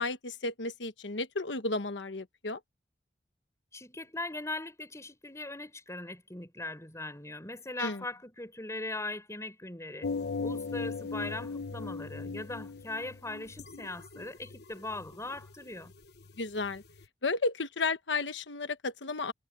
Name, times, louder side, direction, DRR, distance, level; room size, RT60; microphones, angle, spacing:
voice 1, 0.0-2.6 7.8-8.0 16.4-16.8 17.2-19.3, left 3 dB, 90° left, 1.3 m, -33 dB
voice 2, 3.7-10.1 10.4-15.9, left 2 dB, 15° left, 6.9 m, -40 dB
sound 1, 10.0-17.0, left 4 dB, 65° left, 1.2 m, -39 dB
head